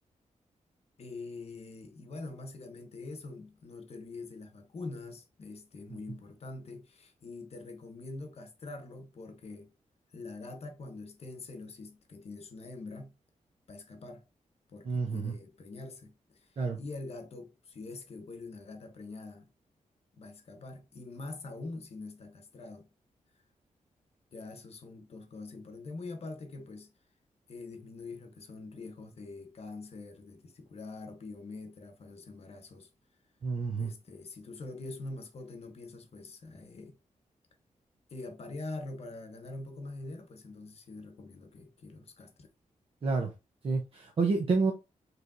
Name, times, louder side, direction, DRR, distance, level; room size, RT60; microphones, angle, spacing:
voice 1, 1.0-9.7 10.1-13.2 13.7-14.3 14.7-19.5 20.1-22.9 24.3-26.9 27.5-32.9 33.8-37.0 38.1-42.5, left 3 dB, 50° left, 0.9 m, -44 dB
voice 2, 14.8-15.3 16.6-16.8 33.4-33.9 43.0-43.3 43.6-44.7, right 4 dB, 45° right, 0.7 m, -29 dB
4.9 x 3.2 x 2.5 m
wide cardioid pair, 160°, 13 cm